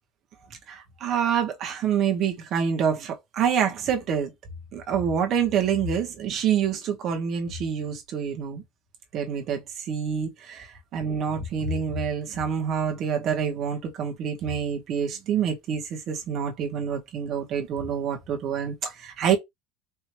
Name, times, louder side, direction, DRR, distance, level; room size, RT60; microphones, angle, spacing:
voice 1, 0.7-4.3 4.7-8.6 9.1-19.4, right 7 dB, 40° right, 1.4 m, -27 dB
4.6 x 3.0 x 3.0 m
cardioid pair, 160°, 0 cm